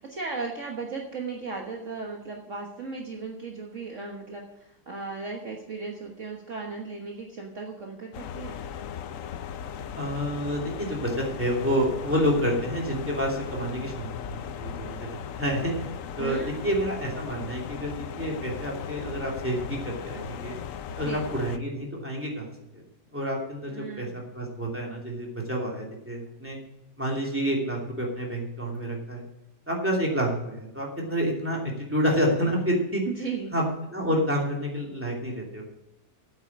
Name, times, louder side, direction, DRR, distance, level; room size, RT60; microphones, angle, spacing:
voice 1, 0.0-8.6 16.2-16.7 20.9-21.2 23.7-24.2 33.1-33.5, right 4 dB, 50° right, 0 dB, 1.6 m, -36 dB
sound 1, 8.1-21.6, left 8 dB, 65° left, 0.9 m, -37 dB
voice 2, 9.9-15.9 16.2-20.6 21.0-22.8 23.1-24.1 24.3-26.6 27.0-29.3 29.7-33.0 33.5-33.6 33.9-35.6, equal, 5° right, -3 dB, 2.7 m, -29 dB
8.7 x 8.4 x 8.5 m, 0.90 s
omnidirectional pair, 1.8 m